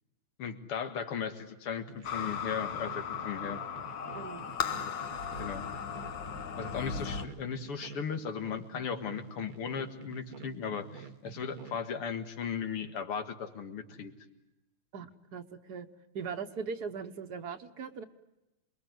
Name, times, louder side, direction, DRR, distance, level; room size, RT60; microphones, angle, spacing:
voice 1, 0.4-3.6 4.7-5.0 5.4-5.6 6.6-14.1, left 6 dB, 90° left, 8 dB, 2.7 m, -37 dB
sound 1, 1.9-11.8, right 6 dB, 75° right, 2.2 m, -49 dB
sound 2, 2.0-7.2, left 7 dB, 60° left, 1.8 m, -37 dB
voice 2, 14.9-15.9 16.1-18.0, right 5 dB, 50° right, 8 dB, 1.5 m, -39 dB
28.0 x 22.0 x 9.4 m, 0.97 s
omnidirectional pair, 2.4 m